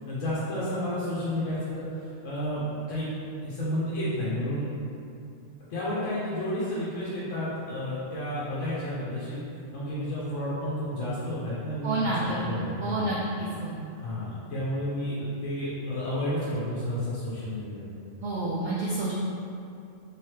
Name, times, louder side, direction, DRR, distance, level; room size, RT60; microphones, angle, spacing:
voice 1, 0.1-3.1 3.4-4.7 5.7-9.4 9.7-13.1 13.9-17.8, left 1 dB, 80° left, -8 dB, 1.0 m, -31 dB
voice 2, 11.8-12.5 12.8-13.8 18.2-19.1, right 2 dB, 65° right, -7 dB, 0.5 m, -29 dB
3.3 x 2.8 x 3.0 m, 2.6 s
omnidirectional pair, 1.3 m